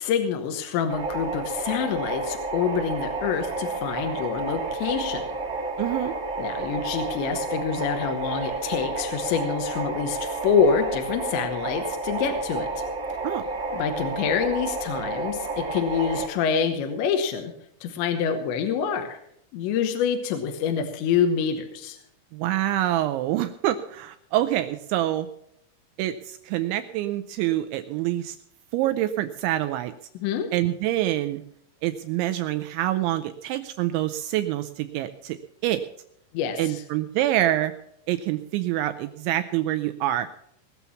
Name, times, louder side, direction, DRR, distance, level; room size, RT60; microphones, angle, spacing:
voice 1, 0.0-5.2 6.4-12.7 13.7-17.5 17.8-19.2 19.5-22.0 30.2-30.5 36.3-36.8, left 7 dB, 75° left, 5 dB, 3.0 m, -26 dB
sound 1, 0.9-16.3, right 3 dB, 55° right, 0.8 m, -31 dB
voice 2, 5.8-6.1 13.2-13.5 22.3-25.3 26.0-28.4 28.7-29.9 30.5-31.4 31.8-35.4 35.6-35.8 36.6-37.7 38.1-40.3, right 14 dB, 85° right, 9 dB, 2.6 m, -26 dB
20.0 x 7.0 x 7.0 m, 0.73 s
omnidirectional pair, 6.0 m